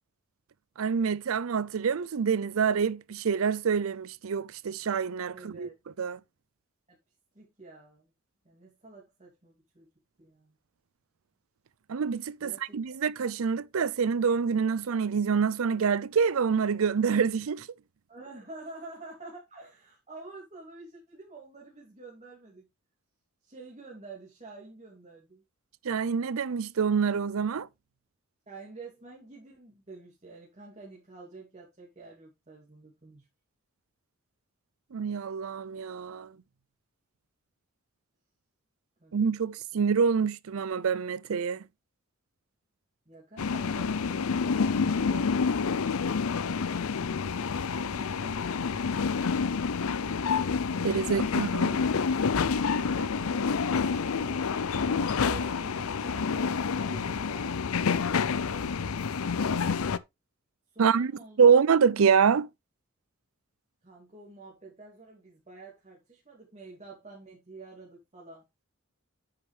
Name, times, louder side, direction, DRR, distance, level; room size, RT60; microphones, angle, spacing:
voice 1, 0.8-5.7 6.0-6.2 11.9-17.7 25.8-27.7 34.9-36.3 39.1-41.6 50.8-51.8 60.8-61.1 61.4-62.5, right 6 dB, 75° right, 0.5 m, -26 dB
voice 2, 5.3-5.7 6.9-7.0 7.3-8.1 8.4-9.9 10.2-10.6 12.4-12.8 18.1-22.7 23.4-25.4 28.5-33.3 39.0-39.1 43.1-45.6 47.7-48.8 51.0-51.4 52.6-54.6 55.0-57.6 60.7-61.5 63.8-68.4, right 3 dB, 35° right, 2.9 m, -49 dB
sound 1, 43.4-60.0, left 5 dB, 85° left, 0.6 m, -28 dB
9.9 x 6.3 x 3.4 m
head